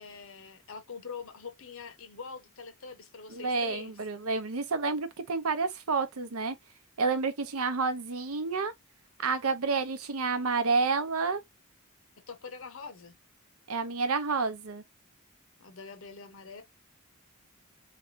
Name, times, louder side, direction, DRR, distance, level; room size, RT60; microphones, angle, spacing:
voice 1, 0.0-4.0 12.3-13.2 15.6-16.6, left 5 dB, 65° left, 0.8 m, -44 dB
voice 2, 3.3-6.6 7.0-8.7 9.2-11.4 13.7-14.8, right 4 dB, 90° right, 0.7 m, -29 dB
3.4 x 3.2 x 2.6 m
head